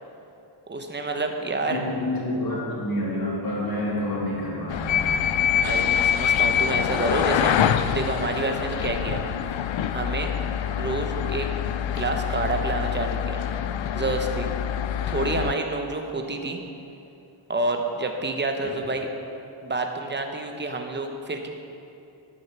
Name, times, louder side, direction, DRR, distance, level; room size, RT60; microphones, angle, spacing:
voice 1, 0.7-1.8 5.6-7.6 7.9-9.2 9.9-10.3 10.8-11.5 11.9-13.4 13.9-14.5 15.1-16.6 17.5-19.1 19.6-21.5, right 2 dB, 20° right, 4 dB, 0.8 m, -28 dB
voice 2, 1.6-5.4, left 1 dB, 45° left, -5 dB, 2.3 m, -28 dB
sound 1, 4.7-15.5, left 9 dB, 70° left, 0.5 m, -25 dB
10.5 x 6.4 x 5.7 m, 2.7 s
wide cardioid pair, 140°, 49 cm